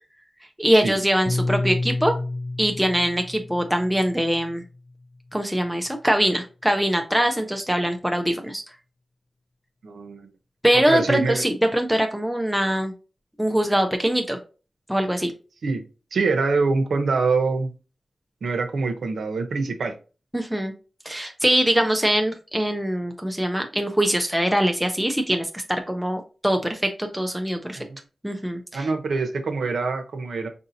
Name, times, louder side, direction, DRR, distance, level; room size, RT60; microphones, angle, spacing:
voice 1, 0.6-2.2 2.6-4.6 5.3-8.6 10.6-12.9 13.4-14.4 14.9-15.3 20.3-20.7 21.0-27.9 28.2-28.9, equal, 5° right, 4 dB, 0.5 m, -23 dB
Piano, 1.3-5.7, left 2 dB, 55° left, 0.5 m, -30 dB
voice 2, 9.8-10.3 10.7-11.4 15.6-15.8 16.1-17.7 18.4-19.9 27.7-28.0 28.7-30.5, right 4 dB, 90° right, 5 dB, 0.7 m, -24 dB
5.0 x 2.7 x 2.6 m, 0.34 s
wide cardioid pair, 90°, 0 cm